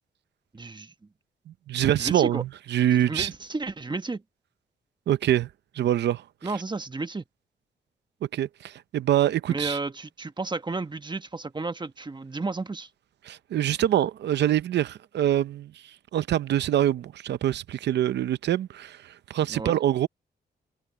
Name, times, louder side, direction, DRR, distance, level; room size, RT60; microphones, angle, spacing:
voice 1, 0.5-0.9 2.0-2.4 3.0-4.2 6.4-7.2 9.5-12.9 19.5-19.8, right 3 dB, 25° right, 1.3 m, -32 dB
voice 2, 1.7-3.3 5.1-5.5 5.7-6.2 8.3-9.8 13.2-15.7 16.1-20.1, right 11 dB, 90° right, 0.7 m, -25 dB
cardioid pair, 75°, 17 cm